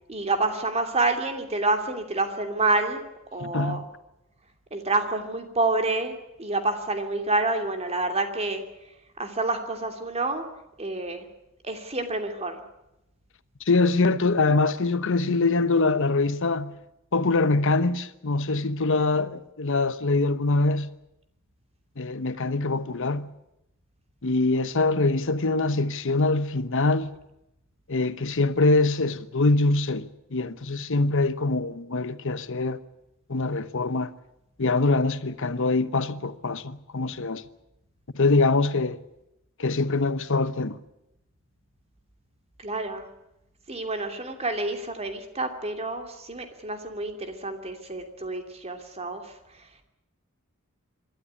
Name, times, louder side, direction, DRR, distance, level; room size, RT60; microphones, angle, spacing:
voice 1, 0.1-3.0 3.3-3.8 4.7-6.1 6.4-8.6 9.2-10.5 10.8-11.3 11.6-12.5 42.6-43.1 43.7-49.2, right 2 dB, 30° right, 2.8 m, -28 dB
voice 2, 3.4-3.8 13.6-16.7 17.1-20.9 22.0-23.3 24.2-27.1 27.9-32.8 33.3-34.1 34.6-37.4 38.1-39.0 39.6-40.8, left 3 dB, 65° left, 1.0 m, -24 dB
25.5 x 13.0 x 9.8 m
head